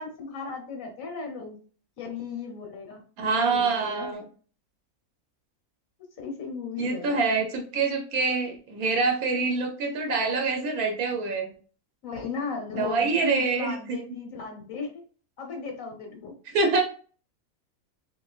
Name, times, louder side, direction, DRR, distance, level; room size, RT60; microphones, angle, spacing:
voice 1, 0.0-1.6 2.0-4.1 6.2-7.4 12.0-14.9 15.4-16.3, left 4 dB, 65° left, 3 dB, 1.4 m, -36 dB
voice 2, 3.2-4.2 6.8-11.5 12.8-14.0 16.5-16.8, right 4 dB, 80° right, 3 dB, 1.3 m, -25 dB
6.3 x 2.4 x 2.4 m, 0.41 s
omnidirectional pair, 1.6 m